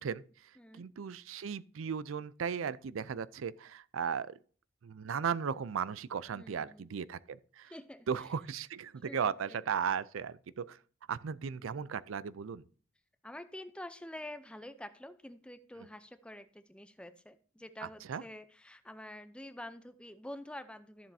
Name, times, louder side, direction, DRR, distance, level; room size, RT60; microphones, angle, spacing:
voice 1, 0.0-4.4 4.8-7.7 8.1-10.8 11.1-12.6 17.8-18.2, right 7 dB, 90° right, 0.4 m, -36 dB
voice 2, 0.6-0.9 6.3-6.9 7.7-8.1 9.0-9.6 13.2-21.1, left 1 dB, 5° left, 0.5 m, -47 dB
13.5 x 7.2 x 2.7 m
head